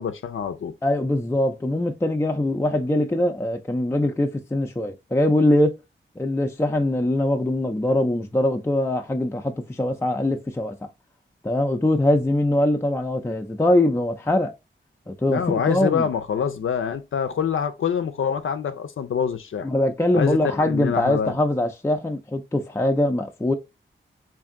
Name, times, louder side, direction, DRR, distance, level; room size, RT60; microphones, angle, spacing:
voice 1, 0.0-0.7 15.3-19.7 20.1-21.3, left 7 dB, 75° left, 0.4 m, -25 dB
voice 2, 0.8-5.7 6.2-10.9 11.4-14.5 15.1-16.1 19.6-23.5, left 1 dB, 10° left, 0.4 m, -22 dB
3.4 x 2.6 x 3.6 m
wide cardioid pair, 65°, 21 cm